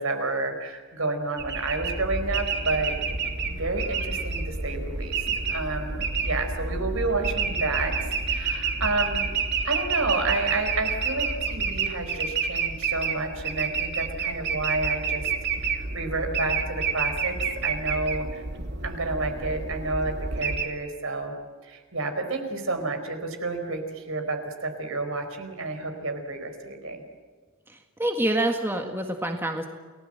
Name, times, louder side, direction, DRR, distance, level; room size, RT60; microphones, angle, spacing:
voice 1, 0.0-2.9 3.5-5.2 5.5-7.9 8.3-9.3 9.6-15.3 15.6-17.4 17.6-18.4 18.8-21.3 21.6-27.0, right 3 dB, 70° right, 6 dB, 4.6 m, -30 dB
sound 1, 1.4-20.7, right 5 dB, 55° right, 2.7 m, -29 dB
voice 2, 28.0-29.7, right 1 dB, 10° right, 3 dB, 1.8 m, -26 dB
29.5 x 19.0 x 7.8 m, 1.4 s
head